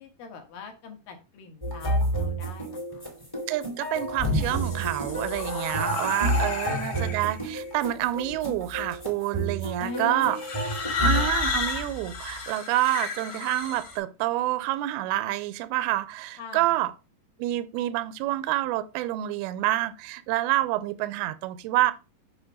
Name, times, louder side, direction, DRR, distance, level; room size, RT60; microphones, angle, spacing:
voice 1, 0.0-3.1 5.7-6.6 9.8-10.3 16.4-16.7, left 5 dB, 65° left, 2.7 m, -41 dB
sound 1, 1.6-11.3, right 1 dB, 10° left, 1.3 m, -30 dB
voice 2, 3.5-10.4 11.0-16.9 17.4-21.9, right 15 dB, 80° right, 2.4 m, -28 dB
sound 2, 4.0-7.4 8.3-8.8 10.3-14.0, left 3 dB, 45° left, 1.4 m, -31 dB
8.0 x 3.1 x 6.1 m
omnidirectional pair, 4.8 m